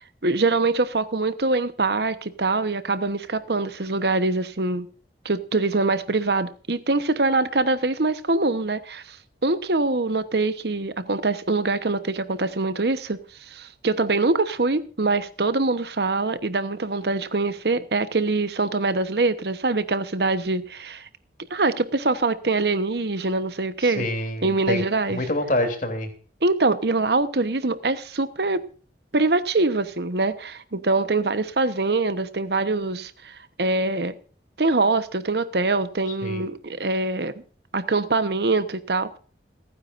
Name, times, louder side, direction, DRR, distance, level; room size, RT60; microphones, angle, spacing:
voice 1, 0.2-4.9 5.2-9.2 9.4-13.2 13.5-21.1 21.5-24.1 24.4-25.3 26.4-28.6 29.1-34.1 34.6-37.3 37.7-39.2, right 3 dB, 65° right, 1.1 m, -24 dB
voice 2, 23.8-24.8 25.1-26.1 36.2-36.4, left 1 dB, 50° left, 3.2 m, -26 dB
28.0 x 9.7 x 2.6 m
head